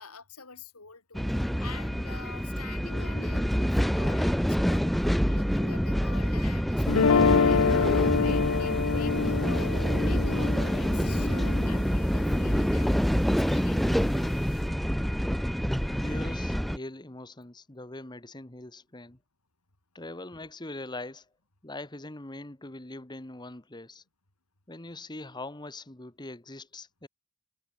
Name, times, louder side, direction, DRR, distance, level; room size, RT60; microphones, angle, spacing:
voice 1, 0.0-14.4, left 5 dB, 85° left, 3.7 m, -47 dB
sound 1, 1.1-16.8, equal, ahead, 0.6 m, -27 dB
sound 2, 6.9-13.0, left 5 dB, 65° left, 0.5 m, -26 dB
voice 2, 15.9-19.2 19.9-21.3 21.6-24.0 24.7-27.1, left 2 dB, 20° left, 1.3 m, -42 dB
head